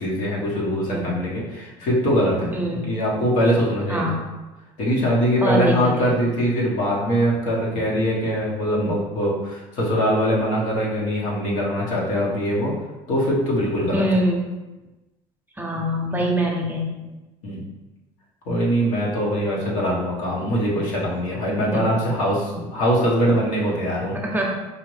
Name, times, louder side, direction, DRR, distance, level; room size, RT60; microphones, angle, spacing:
voice 1, 0.0-2.5 2.9-4.1 4.8-12.7 13.1-14.0 17.4-17.6 18.5-24.2, equal, 70° left, -4 dB, 1.4 m, -22 dB
voice 2, 0.9-1.2 2.5-2.9 3.9-4.2 5.4-6.1 13.9-14.4 15.6-17.2 21.5-21.9 24.1-24.5, right 1 dB, 15° right, -1 dB, 0.8 m, -24 dB
4.7 x 2.5 x 3.3 m, 1.1 s
supercardioid pair, 100°, 14 cm